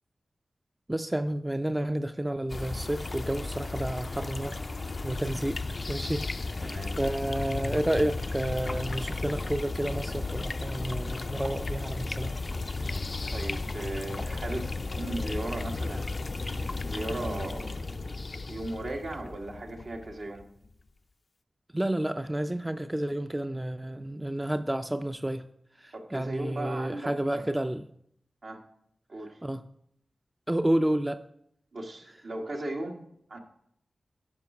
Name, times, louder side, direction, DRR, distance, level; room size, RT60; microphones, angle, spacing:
voice 1, 0.9-4.6 5.0-5.6 5.9-6.2 7.0-12.3 21.7-25.4 26.1-27.8 29.4-29.6 30.5-31.2, right 1 dB, 15° right, 8 dB, 0.5 m, -30 dB
sound 1, 2.5-20.7, left 3 dB, 50° left, 0.4 m, -34 dB
voice 2, 6.6-7.0 13.3-16.1 16.8-17.9 18.3-20.4 25.9-27.6 28.4-28.6 29.1-29.4 31.7-33.4, right 2 dB, 70° right, 1 dB, 1.6 m, -37 dB
11.0 x 5.0 x 6.0 m, 0.71 s
cardioid pair, 45°, 0 cm